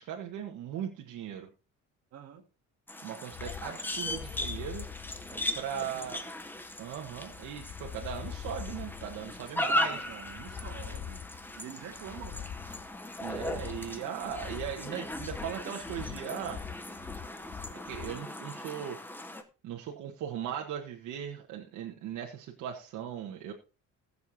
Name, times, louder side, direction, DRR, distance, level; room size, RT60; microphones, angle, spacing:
voice 1, 0.0-1.5 3.0-4.8 5.5-6.2 6.8-10.0 13.2-16.6 17.7-19.0 19.3-19.4 19.6-23.5, right 9 dB, 80° right, 1 dB, 1.5 m, -38 dB
voice 2, 2.1-2.5 5.3-6.3 9.8-11.2 11.6-12.5, right 9 dB, 60° right, 6 dB, 1.8 m, -47 dB
sound 1, 2.9-19.4, left 1 dB, 5° left, 0.8 m, -38 dB
sound 2, 3.3-18.2, left 9 dB, 30° left, 0.4 m, -44 dB
20.5 x 7.0 x 2.7 m, 0.32 s
cardioid pair, 170°, 30 cm